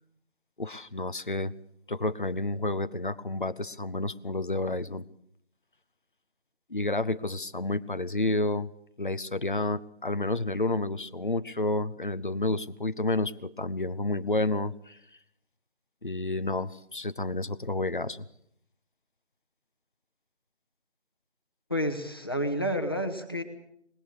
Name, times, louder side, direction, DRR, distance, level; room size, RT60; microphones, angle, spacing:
voice 1, 0.6-1.5 1.9-5.0 6.7-8.7 9.0-15.0 16.0-18.3, left 2 dB, 45° left, 12 dB, 0.9 m, -30 dB
voice 2, 21.7-23.4, equal, 20° left, 6 dB, 1.8 m, -29 dB
26.0 x 21.0 x 6.7 m, 0.70 s
figure-of-eight pair, 180°, 34 cm